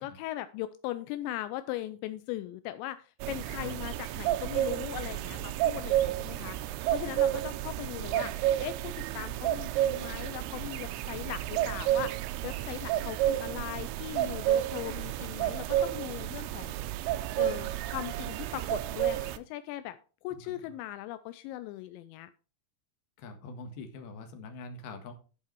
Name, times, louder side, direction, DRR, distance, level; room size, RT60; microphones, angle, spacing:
voice 1, 0.0-8.3 8.6-16.7 17.4-20.0 20.2-22.3, left 14 dB, 85° left, 11 dB, 2.6 m, -39 dB
sound 1, 3.2-19.4, right 13 dB, 80° right, 2.7 m, -31 dB
voice 2, 20.4-20.7 23.2-25.1, left 3 dB, 65° left, 5 dB, 3.0 m, -44 dB
13.5 x 4.7 x 4.5 m, 0.36 s
omnidirectional pair, 5.7 m